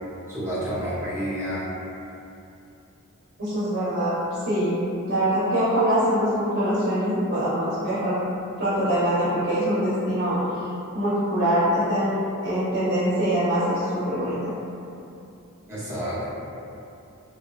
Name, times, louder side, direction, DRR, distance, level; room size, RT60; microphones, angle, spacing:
voice 1, 0.3-1.7 15.7-16.3, equal, 10° right, -12 dB, 0.8 m, -29 dB
voice 2, 3.4-4.2 4.5-4.8 5.1-8.2 8.6-10.4 10.9-12.1 12.4-14.5, equal, 60° right, -12 dB, 0.8 m, -23 dB
2.6 x 2.4 x 2.3 m, 2.7 s
head